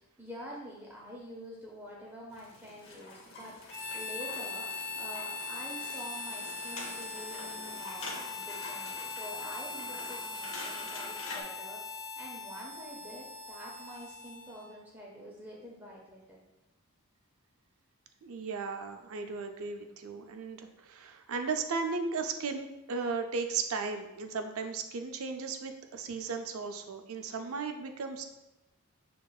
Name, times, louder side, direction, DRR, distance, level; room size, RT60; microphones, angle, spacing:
voice 1, 0.0-16.4, equal, 10° right, -4 dB, 0.6 m, -47 dB
sound 1, 2.3-11.4, left 2 dB, 60° left, 0.7 m, -46 dB
Harmonica, 3.7-14.8, left 4 dB, 10° left, 0.9 m, -40 dB
voice 2, 18.2-28.2, right 4 dB, 70° right, 6 dB, 0.4 m, -36 dB
6.4 x 2.9 x 2.3 m, 0.95 s
head